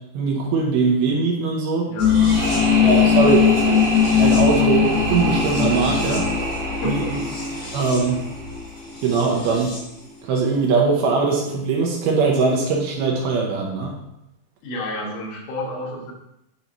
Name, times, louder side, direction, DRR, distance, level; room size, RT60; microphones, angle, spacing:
voice 1, 0.1-1.9 2.8-3.4 3.7-3.8 4.2-6.2 6.8-7.2 7.7-8.2 9.0-9.7 10.2-13.9, right 4 dB, 75° right, -1 dB, 2.3 m, -21 dB
voice 2, 1.8-3.2 6.8-7.1 14.6-16.1, left 1 dB, 90° left, -2 dB, 3.8 m, -30 dB
sound 1, 2.0-9.9 10.2-10.3, left 7 dB, 65° left, 2.1 m, -21 dB
sound 2, 2.0-9.0, right 2 dB, 55° right, 2.0 m, -28 dB
9.4 x 3.9 x 3.0 m, 0.83 s
omnidirectional pair, 5.4 m